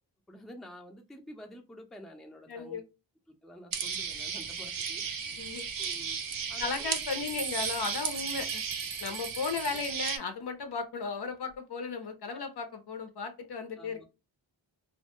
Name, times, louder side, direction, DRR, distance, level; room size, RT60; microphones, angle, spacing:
voice 1, 0.3-2.8 3.4-5.5 5.8-6.2 6.5-6.9 13.8-14.0, equal, ahead, 3 dB, 0.5 m, -49 dB
voice 2, 2.5-2.8 5.4-5.6 6.6-8.6 9.0-14.0, left 5 dB, 60° left, 7 dB, 0.6 m, -35 dB
sound 1, 3.7-10.2, right 6 dB, 50° right, 0.5 m, -35 dB
sound 2, 6.6-10.1, right 6 dB, 85° right, 0.7 m, -43 dB
2.1 x 2.0 x 2.9 m, 0.27 s
cardioid pair, 45°, 46 cm